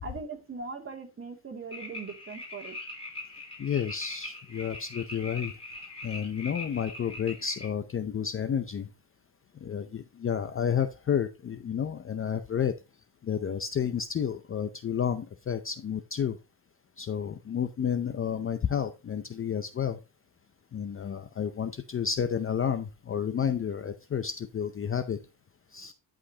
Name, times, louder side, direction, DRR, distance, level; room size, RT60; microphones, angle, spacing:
voice 1, 0.0-2.8, right 4 dB, 30° right, 2.5 m, -40 dB
sound 1, 1.7-7.7, left 2 dB, 15° left, 3.7 m, -42 dB
voice 2, 3.6-5.5 6.0-8.9 9.6-12.7 13.2-16.4 17.0-20.0 20.7-25.2 25.7-25.9, left 8 dB, 30° left, 0.6 m, -31 dB
11.0 x 5.1 x 2.8 m
cardioid pair, 120°, 44 cm